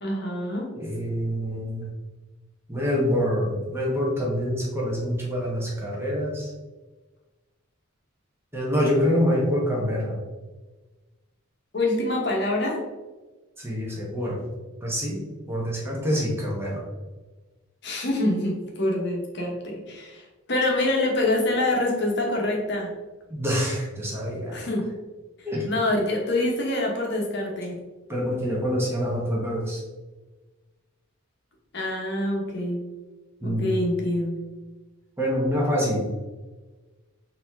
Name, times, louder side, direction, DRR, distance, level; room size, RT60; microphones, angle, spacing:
voice 1, 0.0-0.7 11.7-12.8 17.8-22.9 24.5-24.9 25.4-27.8 31.7-32.8 33.4-34.4, left 1 dB, 55° left, 0 dB, 1.0 m, -26 dB
voice 2, 0.8-1.9 2.7-6.5 8.5-10.2 13.6-14.4 14.8-16.8 23.3-24.6 25.5-25.7 28.1-29.8 33.4-33.8 35.2-36.1, equal, 10° right, -4 dB, 1.0 m, -26 dB
4.2 x 2.9 x 3.5 m, 1.2 s
head